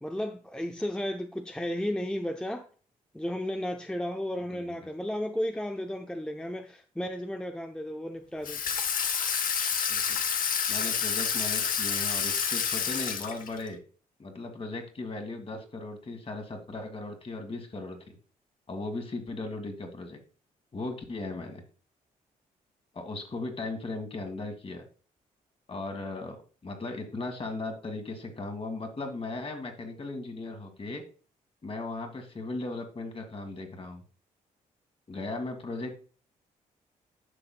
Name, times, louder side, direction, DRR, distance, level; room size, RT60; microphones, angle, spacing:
voice 1, 0.0-2.7 3.1-8.6, left 1 dB, 5° left, 0.7 m, -33 dB
Water tap faucet / Sink (filling or washing), 8.5-13.7, left 7 dB, 65° left, 0.9 m, -29 dB
voice 2, 9.9-10.2 10.7-13.8 14.2-18.2 18.7-20.2 20.7-21.6 22.9-24.8 25.7-31.0 31.6-34.0 35.1-36.0, left 2 dB, 40° left, 1.9 m, -37 dB
10.0 x 5.8 x 2.3 m
supercardioid pair, 60°, 16 cm